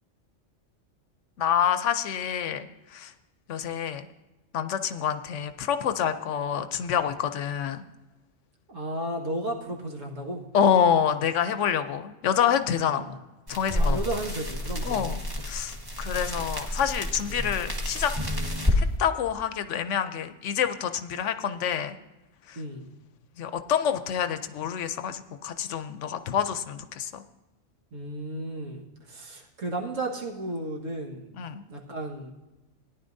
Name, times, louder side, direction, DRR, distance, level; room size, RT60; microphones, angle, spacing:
voice 1, 1.4-3.1 3.5-4.1 4.5-7.8 10.5-13.1 13.5-14.0 14.8-15.2 15.5-18.1 18.8-22.0 22.5-22.6 23.4-27.2 31.4-31.6, left 8 dB, 75° left, 10 dB, 0.9 m, -27 dB
voice 2, 8.7-10.4 12.9-13.1 13.8-15.1 17.3-17.5 22.5-22.9 27.9-31.4 31.7-32.3, right 1 dB, 80° right, -1 dB, 1.9 m, -34 dB
sound 1, 13.5-18.8, left 1 dB, 20° right, 1.3 m, -29 dB
17.5 x 10.5 x 2.6 m, 1.0 s
omnidirectional pair, 1.3 m